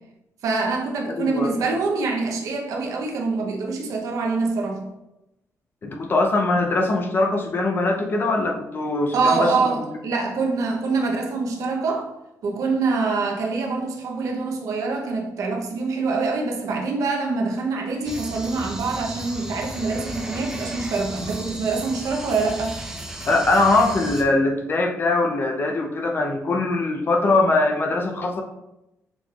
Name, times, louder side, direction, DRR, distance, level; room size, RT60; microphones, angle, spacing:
voice 1, 0.4-4.8 9.1-12.1 12.4-22.8, right 4 dB, 75° right, 0.7 m, -25 dB
voice 2, 1.1-1.6 5.8-9.8 23.3-28.4, left 2 dB, 35° left, 0.5 m, -22 dB
sound 1, 18.1-24.2, right 1 dB, 10° right, 0.6 m, -35 dB
6.2 x 3.2 x 2.3 m
cardioid pair, 125°, 6 cm